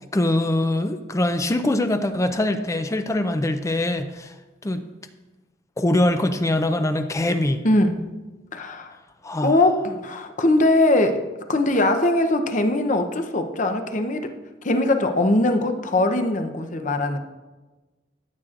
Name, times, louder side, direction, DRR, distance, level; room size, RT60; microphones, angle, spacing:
voice 1, 0.1-4.3 4.6-4.8 5.8-7.6 9.2-9.6, left 1 dB, 15° left, 8 dB, 0.4 m, -23 dB
voice 2, 7.6-8.1 8.5-8.9 9.4-14.3 14.6-17.2, left 2 dB, 45° left, 7 dB, 0.7 m, -21 dB
14.0 x 7.8 x 2.5 m, 1.2 s
head